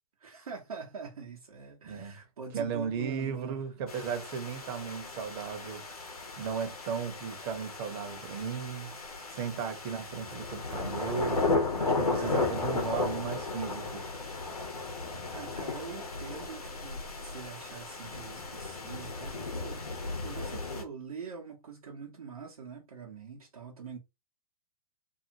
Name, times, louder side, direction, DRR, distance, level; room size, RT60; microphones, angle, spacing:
voice 1, 0.2-3.6 15.3-19.9 20.2-24.0, right 6 dB, 75° right, 0.9 m, -44 dB
voice 2, 1.8-2.2 2.5-5.8 6.4-9.0 9.3-11.5 11.8-14.0, right 6 dB, 45° right, 0.9 m, -35 dB
sound 1, 3.9-20.8, left 3 dB, 85° left, 1.0 m, -35 dB
2.7 x 2.5 x 2.8 m
figure-of-eight pair, 110°, 19 cm